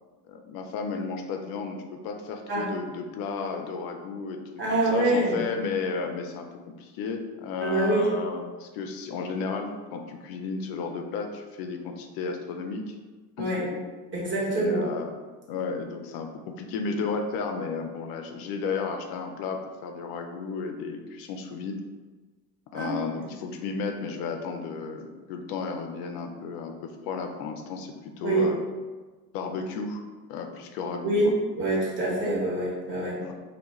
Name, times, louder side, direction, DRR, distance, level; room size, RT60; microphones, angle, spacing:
voice 1, 0.3-4.4 4.7-6.5 6.8-12.9 13.7-13.8 14.5-15.1 15.5-21.8 22.7-28.6 29.3-30.0 30.3-31.3 33.2-33.3, left 5 dB, 50° left, 4 dB, 0.4 m, -33 dB
voice 2, 4.6-5.4 7.6-8.1 13.4-13.7 14.1-14.9 22.7-22.9 28.2-28.5 31.0-33.2, right 2 dB, 25° right, -6 dB, 1.0 m, -25 dB
2.3 x 2.2 x 2.9 m, 1.3 s
figure-of-eight pair, 60°, 47 cm